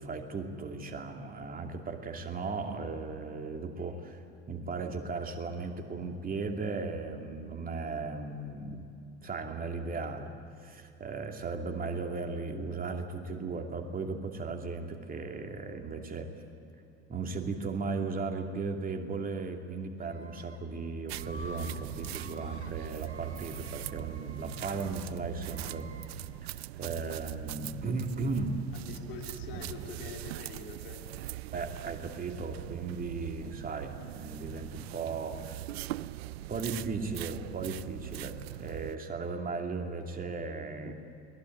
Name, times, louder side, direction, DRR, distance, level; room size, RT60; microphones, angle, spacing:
voice 1, 0.0-4.2 4.5-8.8 9.2-10.3 10.6-16.3 17.1-25.9 26.4-28.6 29.5-29.6 31.5-35.6 36.5-40.9, right 4 dB, 25° right, 3 dB, 2.6 m, -36 dB
Screaming, 20.0-20.6 21.1-21.8 22.1-22.7 23.0-24.9 25.4-26.1, right 1 dB, 85° right, 1.9 m, -50 dB
sound 1, 21.1-39.0, right 16 dB, 65° right, 0.5 m, -41 dB
voice 2, 28.8-31.2, left 5 dB, 60° left, 1 dB, 3.7 m, -45 dB
22.5 x 18.5 x 9.3 m, 2.7 s
figure-of-eight pair, 65°, 33 cm